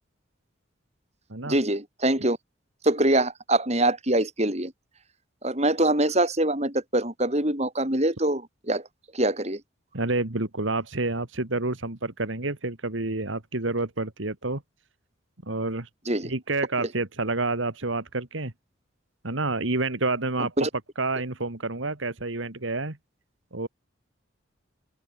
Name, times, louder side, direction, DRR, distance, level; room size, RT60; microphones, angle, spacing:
voice 1, 1.4-2.4 2.8-4.7 5.4-8.9 9.1-9.6 16.1-16.3 16.8-16.9 20.4-20.7, right 1 dB, 35° right, 4.8 m, -24 dB
voice 2, 9.9-14.6 15.4-15.9 16.2-18.5 19.2-20.5 21.0-23.0 23.5-23.7, right 2 dB, 75° right, 2.1 m, -29 dB
open air
head